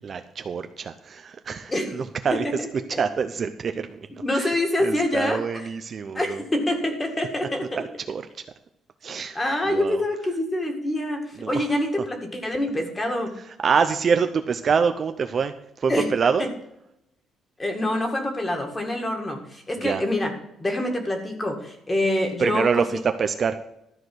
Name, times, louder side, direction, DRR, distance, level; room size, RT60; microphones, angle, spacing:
voice 1, 0.0-2.5 3.0-4.0 4.3-4.5 4.8-6.4 8.1-8.2 9.0-9.4 9.7-10.0 11.4-11.6 13.6-16.5 19.8-20.0 22.4-23.6, right 6 dB, 35° right, 8 dB, 0.5 m, -25 dB
voice 2, 2.3-3.0 4.2-5.7 6.1-7.7 9.3-13.3 15.9-16.1 16.4-16.5 17.6-20.3 20.6-23.0, left 1 dB, 15° left, 4 dB, 1.9 m, -26 dB
13.0 x 4.8 x 7.8 m, 0.82 s
cardioid pair, 165°, 0 cm